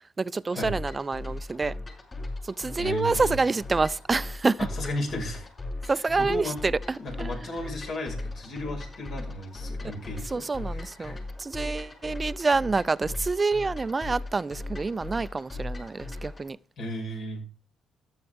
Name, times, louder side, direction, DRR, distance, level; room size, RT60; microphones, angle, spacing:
voice 1, 0.2-1.8 2.4-4.6 5.9-7.4 10.3-16.6, right 3 dB, 25° right, 0.5 m, -27 dB
sound 1, 0.6-16.5, left 2 dB, 30° left, 6.4 m, -38 dB
voice 2, 2.8-3.3 4.6-5.5 5.8-5.9 6.2-6.6 7.0-11.2 16.8-17.4, left 1 dB, 65° left, 6.2 m, -35 dB
13.5 x 11.0 x 3.6 m
cardioid pair, 90°, 0 cm